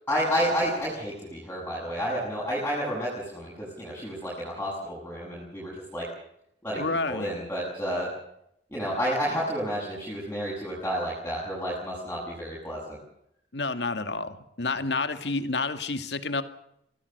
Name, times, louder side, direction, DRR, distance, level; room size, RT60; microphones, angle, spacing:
voice 1, 0.1-6.1 6.6-8.1 8.7-13.0, equal, 10° left, -6 dB, 7.7 m, -30 dB
voice 2, 6.8-7.3 13.5-16.4, left 3 dB, 65° left, 9 dB, 2.2 m, -29 dB
26.0 x 18.0 x 6.8 m, 0.76 s
head